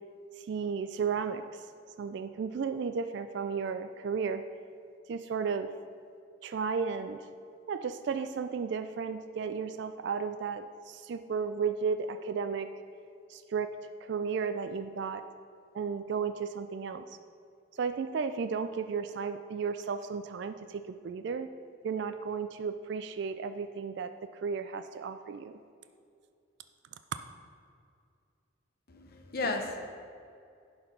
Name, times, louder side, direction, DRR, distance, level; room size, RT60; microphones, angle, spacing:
voice 1, 0.5-1.4 2.0-4.4 5.1-5.7 6.4-7.2 7.7-12.8 13.3-13.7 14.1-15.2 15.7-17.0 17.8-21.5 21.8-24.1 24.4-25.5, right 5 dB, 55° right, 10 dB, 0.3 m, -34 dB
voice 2, 28.9-29.9, left 2 dB, 45° left, 4 dB, 0.8 m, -34 dB
11.0 x 4.4 x 5.2 m, 2.4 s
head